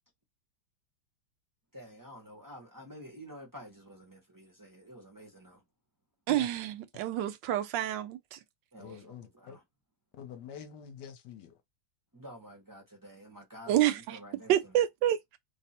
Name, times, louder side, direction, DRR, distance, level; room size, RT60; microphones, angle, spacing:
voice 1, 1.7-5.6 8.7-9.6 12.1-14.7, equal, 30° right, 0.4 m, -50 dB
voice 2, 6.3-8.4 13.7-14.2 14.5-15.4, right 12 dB, 80° right, 1.3 m, -28 dB
voice 3, 8.8-9.6 10.1-11.6, left 8 dB, 70° left, 1.2 m, -46 dB
3.4 x 2.0 x 4.1 m
omnidirectional pair, 2.0 m